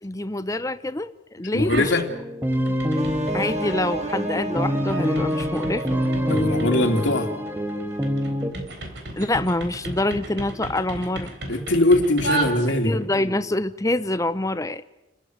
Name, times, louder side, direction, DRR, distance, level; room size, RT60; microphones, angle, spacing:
voice 1, 0.0-1.9 3.3-6.0 9.2-11.3 12.7-14.8, left 1 dB, 15° left, 13 dB, 0.8 m, -26 dB
voice 2, 1.5-2.1 6.3-7.3 11.5-13.0, left 1 dB, 65° left, 4 dB, 2.9 m, -21 dB
sound 1, 1.6-2.1 2.4-13.1, right 2 dB, 60° right, 3.8 m, -34 dB
sound 2, 2.1-8.5, equal, 10° right, 1.9 m, -26 dB
sound 3, 3.0-7.8, right 2 dB, 35° right, 1.9 m, -33 dB
29.5 x 14.5 x 9.5 m, 0.97 s
head